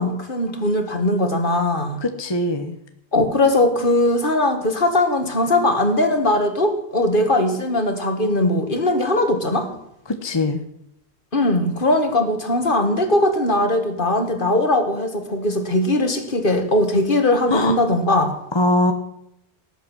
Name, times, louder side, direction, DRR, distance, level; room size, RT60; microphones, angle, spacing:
voice 1, 0.0-2.0 3.1-9.7 11.3-18.3, left 1 dB, 50° left, 6 dB, 2.0 m, -20 dB
voice 2, 2.0-2.8 10.1-10.6 17.5-17.8 18.5-18.9, left 1 dB, 25° left, 7 dB, 1.0 m, -21 dB
18.5 x 8.2 x 6.2 m, 0.79 s
omnidirectional pair, 1.1 m